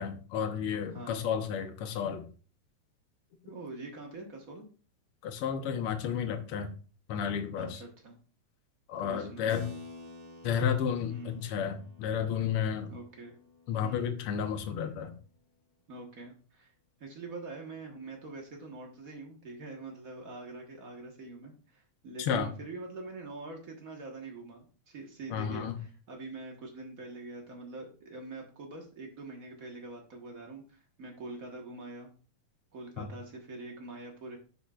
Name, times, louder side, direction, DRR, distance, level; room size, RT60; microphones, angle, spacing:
voice 1, 0.0-2.3 5.2-6.7 7.1-7.8 8.9-9.7 10.4-12.9 13.7-15.1 22.2-22.5 25.3-25.8 33.0-33.1, left 7 dB, 65° left, 7 dB, 1.5 m, -32 dB
voice 2, 0.9-1.2 3.4-4.7 7.5-8.2 9.0-9.6 11.1-11.4 12.9-13.4 13.8-14.2 15.9-16.7 17.0-32.1 32.7-34.4, right 3 dB, 50° right, 1 dB, 1.0 m, -44 dB
Keyboard (musical), 9.5-15.5, left 3 dB, 75° right, 3.2 m, -51 dB
11.0 x 5.4 x 2.4 m, 0.38 s
omnidirectional pair, 3.5 m